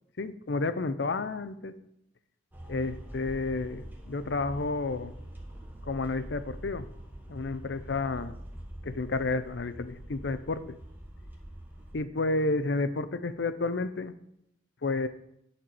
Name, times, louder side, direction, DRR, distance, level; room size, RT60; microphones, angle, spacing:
voice 1, 0.2-1.7 2.7-5.1 5.8-6.9 7.3-8.4 8.8-10.6 11.9-14.1 14.8-15.1, left 3 dB, 65° left, 12 dB, 0.6 m, -31 dB
sound 1, 2.5-12.0, right 1 dB, 10° right, 1.4 m, -45 dB
10.5 x 4.4 x 6.8 m, 0.78 s
head